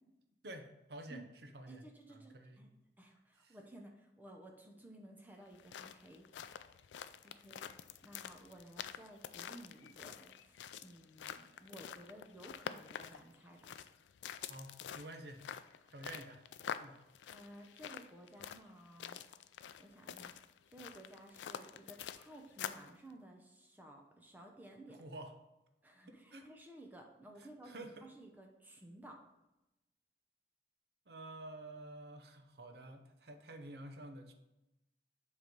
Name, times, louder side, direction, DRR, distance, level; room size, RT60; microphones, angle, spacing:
voice 1, 0.4-2.7 3.4-3.6 14.5-15.4 15.9-16.4 16.8-17.0 24.9-25.3 26.3-26.5 27.4-28.1 31.1-34.3, right 1 dB, 65° right, 5 dB, 0.8 m, -50 dB
voice 2, 1.7-2.7 3.0-6.3 7.2-13.8 17.3-19.2 19.8-25.0 25.8-29.2, right 1 dB, 10° right, 2 dB, 0.6 m, -55 dB
sound 1, 5.5-22.9, left 8 dB, 85° left, 0.3 m, -47 dB
7.7 x 3.2 x 5.2 m, 0.94 s
head